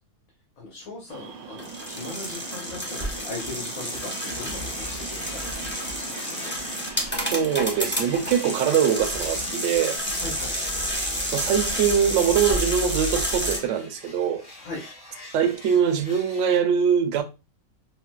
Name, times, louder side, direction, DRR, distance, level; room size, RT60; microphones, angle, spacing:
voice 1, 0.6-5.7 6.0-6.1 6.3-6.5 10.2-10.5 14.6-14.8, left 2 dB, 80° left, 1.4 m, -39 dB
sound 1, 1.1-8.8, right 6 dB, 85° right, 1.1 m, -42 dB
sound 2, 1.6-13.6, equal, 15° left, 0.5 m, -30 dB
sound 3, 3.8-16.6, left 2 dB, 60° left, 2.4 m, -44 dB
voice 2, 7.3-10.0 10.5-10.8 11.3-14.5 15.3-17.2, right 8 dB, 70° right, 0.8 m, -23 dB
4.4 x 2.0 x 2.2 m
omnidirectional pair, 1.4 m